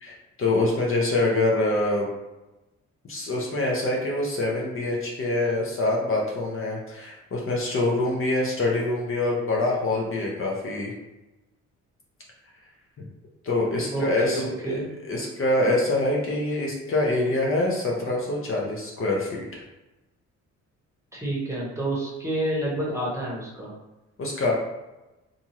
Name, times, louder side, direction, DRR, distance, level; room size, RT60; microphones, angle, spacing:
voice 1, 0.0-2.1 3.1-10.9 13.4-14.8 15.1-19.6 24.2-24.5, left 2 dB, 45° left, -2 dB, 0.7 m, -25 dB
voice 2, 13.8-14.8 21.1-23.7, right 1 dB, 10° right, -5 dB, 1.0 m, -29 dB
2.6 x 2.4 x 2.9 m, 1.0 s
cardioid pair, 90°, 30 cm